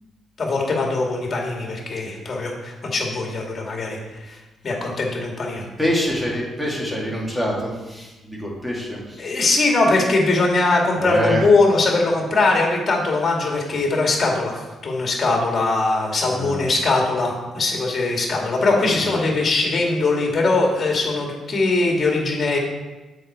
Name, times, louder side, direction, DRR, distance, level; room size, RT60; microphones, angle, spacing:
voice 1, 0.4-4.0 4.6-5.7 9.2-22.6, left 3 dB, 40° left, 0 dB, 2.2 m, -21 dB
voice 2, 5.8-9.3 11.0-11.4 16.3-16.7 18.9-19.1, equal, ahead, -3 dB, 2.3 m, -25 dB
7.5 x 5.6 x 4.4 m, 1.1 s
cardioid pair, 90°, 0 cm